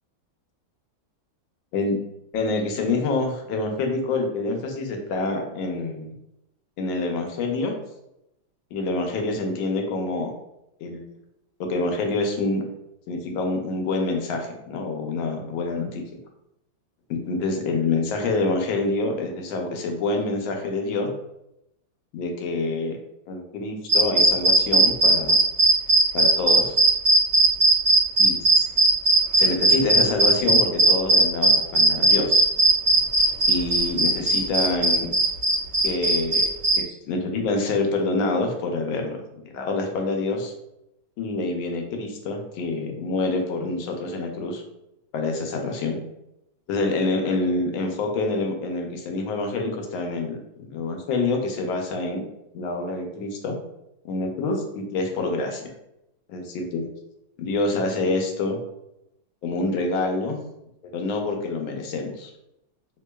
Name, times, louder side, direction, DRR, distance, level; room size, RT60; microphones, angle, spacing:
voice 1, 2.3-6.1 6.8-7.7 8.7-10.3 10.8-11.0 11.6-12.6 13.1-16.0 17.1-21.1 22.1-23.0 23.3-25.4 26.1-26.8 28.2-28.7 29.4-32.4 33.5-35.1 35.8-36.5 36.7-39.2 39.4-40.5 41.2-44.6 45.1-46.0 46.7-52.2 52.5-53.6 54.0-55.6 56.3-56.9 57.4-58.6 59.4-60.4 60.9-62.3, left 3 dB, 85° left, 3 dB, 1.4 m, -26 dB
sound 1, 23.9-36.8, right 2 dB, 55° right, 1.6 m, -17 dB
3.6 x 3.3 x 2.2 m, 0.85 s
omnidirectional pair, 2.1 m